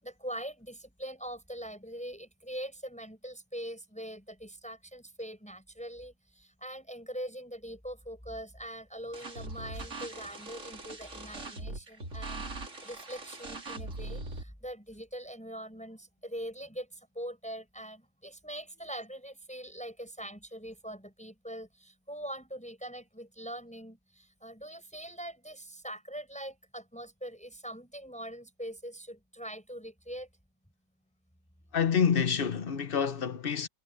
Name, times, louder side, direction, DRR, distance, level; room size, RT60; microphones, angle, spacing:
voice 1, 0.0-12.5 12.8-30.3, equal, 5° left, 6.6 m, -42 dB
sound 1, 9.1-14.4, right 2 dB, 45° right, 3.3 m, -41 dB
voice 2, 31.7-33.7, left 7 dB, 40° left, 1.0 m, -27 dB
omnidirectional pair, 1.9 m